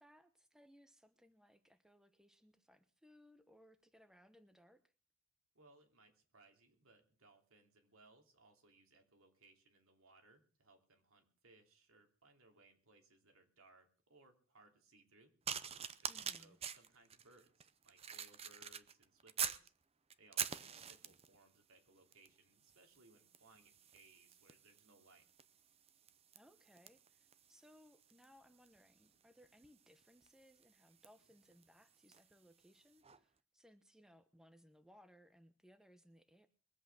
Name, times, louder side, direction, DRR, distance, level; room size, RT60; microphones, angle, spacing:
voice 1, 0.0-4.9 16.1-16.6 26.3-36.5, equal, 5° right, 9 dB, 0.9 m, -66 dB
voice 2, 5.5-15.3 16.0-19.7 20.2-25.2, right 2 dB, 75° right, 4 dB, 3.1 m, -67 dB
sound 1, 15.5-19.7 20.1-21.4 22.1-22.4 22.6-32.3 33.0-33.2, right 8 dB, 30° right, 0.7 m, -46 dB
22.0 x 8.1 x 6.1 m, 0.39 s
head